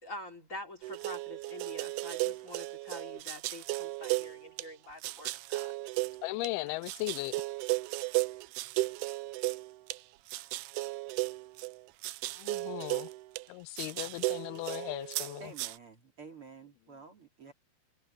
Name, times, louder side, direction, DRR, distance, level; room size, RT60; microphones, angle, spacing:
voice 1, 0.0-5.7, left 1 dB, 20° left, 3.2 m, -46 dB
sound 1, 0.8-4.7 5.0-6.5 6.8-10.0 10.3-13.5 13.8-15.8, right 20 dB, 85° right, 2.6 m, -35 dB
voice 2, 6.2-7.3 12.4-13.1 13.5-15.5, left 20 dB, 90° left, 2.5 m, -37 dB
voice 3, 15.4-17.5, right 5 dB, 35° right, 4.0 m, -50 dB
omnidirectional pair, 4.4 m